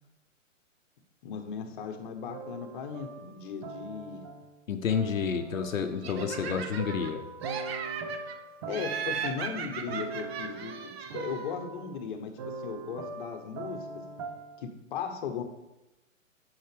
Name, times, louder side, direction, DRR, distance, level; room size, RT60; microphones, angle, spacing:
voice 1, 1.2-4.2 8.7-10.7 11.1-14.0 14.6-15.4, left 6 dB, 40° left, 5 dB, 1.0 m, -37 dB
sound 1, 2.3-4.5 4.9-14.6, right 3 dB, 30° right, 0.5 m, -41 dB
voice 2, 4.7-7.2, left 7 dB, 80° left, 7 dB, 0.8 m, -30 dB
Laughter, 6.0-7.1 7.4-8.4 8.7-11.5, right 7 dB, 50° right, 0.8 m, -37 dB
7.9 x 5.7 x 3.4 m, 0.96 s
hypercardioid pair, 135°, 39 cm